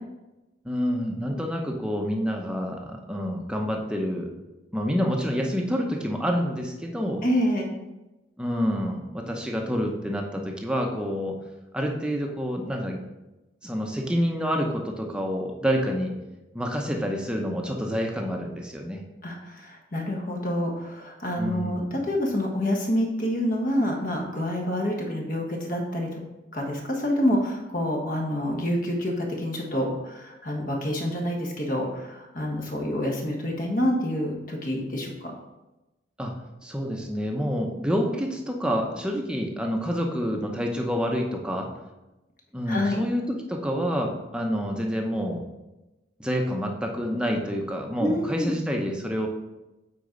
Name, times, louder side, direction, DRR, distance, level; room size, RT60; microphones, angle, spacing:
voice 1, 0.6-4.3 4.7-7.2 8.4-11.4 11.7-13.0 13.6-16.1 16.5-19.0 21.4-22.0 36.2-36.3 36.6-41.7 42.5-45.4 46.2-49.3, equal, 5° right, 1 dB, 0.8 m, -28 dB
voice 2, 7.2-7.7 19.2-26.2 26.5-35.3 42.7-43.0 48.0-48.5, equal, 45° left, 0 dB, 1.4 m, -27 dB
8.3 x 4.6 x 3.9 m, 1.0 s
head